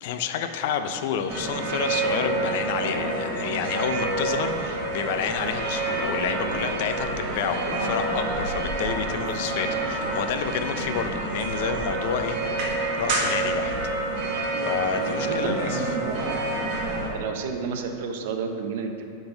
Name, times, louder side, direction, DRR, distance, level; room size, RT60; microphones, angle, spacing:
voice 1, 0.0-12.4 13.0-13.7 14.6-16.0, left 7 dB, 55° left, 8 dB, 0.4 m, -29 dB
sound 1, 1.3-17.1, right 2 dB, 45° right, 1.3 m, -28 dB
voice 2, 15.2-16.2 16.9-19.0, right 5 dB, 60° right, 5 dB, 0.6 m, -31 dB
7.9 x 3.9 x 3.8 m, 2.6 s
supercardioid pair, 160°, 0 cm